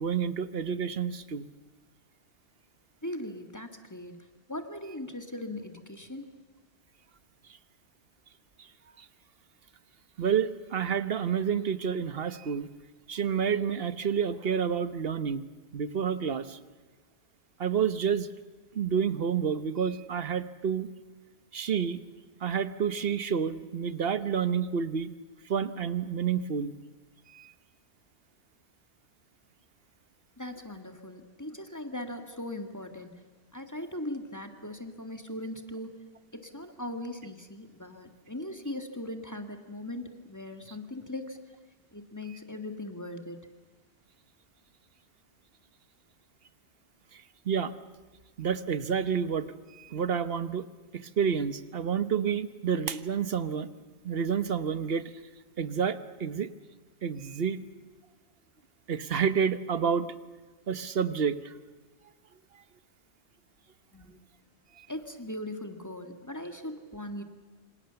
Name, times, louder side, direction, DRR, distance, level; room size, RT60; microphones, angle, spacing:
voice 1, 0.0-1.5 10.2-12.7 13.1-15.4 15.7-16.6 17.6-18.3 18.7-20.9 21.5-22.0 22.4-25.1 25.5-26.7 27.3-27.5 47.5-47.7 48.4-50.7 50.9-53.7 54.0-55.0 55.6-56.5 57.0-57.6 58.9-60.1 60.7-61.5 64.8-64.9, right 7 dB, 60° right, 13 dB, 1.2 m, -29 dB
voice 2, 3.0-4.2 4.5-6.3 30.4-33.1 33.5-35.9 36.3-41.4 41.9-43.5 63.9-64.2 64.9-67.2, left 1 dB, 15° left, 6 dB, 1.9 m, -39 dB
27.0 x 26.0 x 7.0 m, 1.3 s
omnidirectional pair, 1.2 m